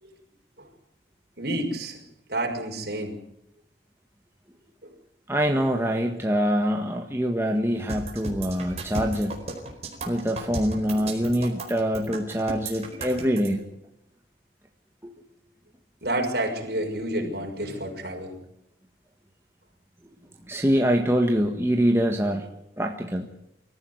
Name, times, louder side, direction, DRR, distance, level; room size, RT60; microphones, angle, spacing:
voice 1, 1.4-2.0 2.3-3.2 4.8-4.9 16.0-18.4, right 1 dB, 55° right, 2 dB, 5.9 m, -29 dB
voice 2, 5.3-9.4 10.0-13.6 15.0-15.1 20.5-22.5 22.8-23.3, equal, 15° right, 2 dB, 1.6 m, -24 dB
sound 1, 7.9-13.5, right 2 dB, 35° right, 4.5 m, -34 dB
25.5 x 14.5 x 9.7 m, 0.82 s
head